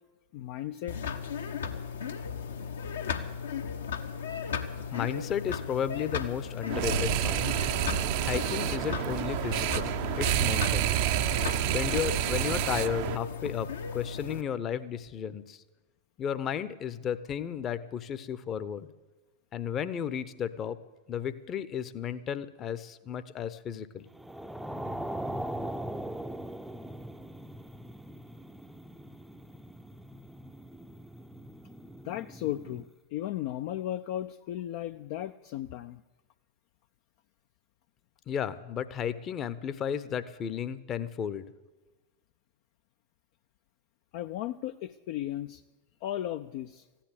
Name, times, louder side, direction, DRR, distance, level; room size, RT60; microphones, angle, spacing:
voice 1, 0.3-1.0 32.0-32.9 33.1-36.0 44.1-45.6 46.0-46.9, left 12 dB, 50° left, 9 dB, 0.4 m, -35 dB
sound 1, 0.9-14.4, left 6 dB, 65° left, 1.0 m, -36 dB
voice 2, 4.9-7.5 8.2-10.9 11.6-15.6 16.2-18.9 19.5-20.8 21.1-24.1 38.3-41.5, left 8 dB, 30° left, 14 dB, 0.8 m, -34 dB
sound 2, 6.7-13.2, right 12 dB, 50° right, 0.6 m, -29 dB
sound 3, 24.1-32.9, right 1 dB, ahead, 0.6 m, -40 dB
15.0 x 10.0 x 8.2 m, 1.2 s
figure-of-eight pair, 90°, 0 cm